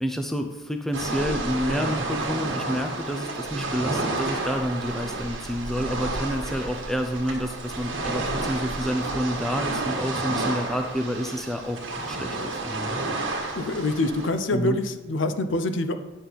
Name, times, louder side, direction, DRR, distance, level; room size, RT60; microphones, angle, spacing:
voice 1, 0.0-11.8 12.1-13.0 14.5-14.8, equal, ahead, 5 dB, 0.4 m, -29 dB
sound 1, 0.9-14.3, right 2 dB, 60° right, 1.5 m, -30 dB
voice 2, 13.5-15.9, left 2 dB, 60° left, 9 dB, 0.6 m, -25 dB
9.7 x 6.3 x 4.0 m, 1.1 s
head